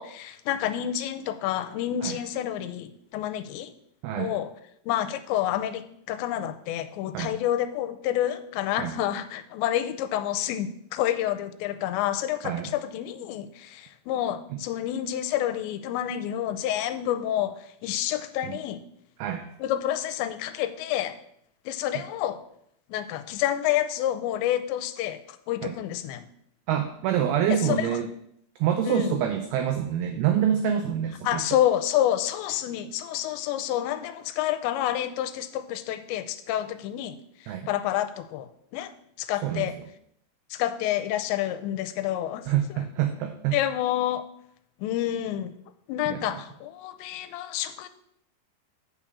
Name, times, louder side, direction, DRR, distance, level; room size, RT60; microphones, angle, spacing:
voice 1, 0.0-3.7 4.2-4.5 4.9-18.8 19.6-21.2 21.7-22.4 22.9-26.3 27.5-27.9 28.8-29.2 31.2-37.2 37.4-38.9 39.2-39.7 40.5-42.8 43.5-44.3 44.8-45.5 45.9-47.9, left 12 dB, 85° left, 10 dB, 2.7 m, -29 dB
voice 2, 4.0-4.3 7.1-7.3 8.8-9.0 12.4-12.7 14.5-14.6 18.4-18.5 19.2-19.4 25.6-25.7 26.7-28.1 28.6-31.4 37.5-37.7 39.4-39.7 42.5-43.6 46.1-46.4, right 9 dB, 85° right, 6 dB, 2.2 m, -26 dB
7.3 x 6.3 x 6.9 m, 0.73 s
omnidirectional pair, 5.3 m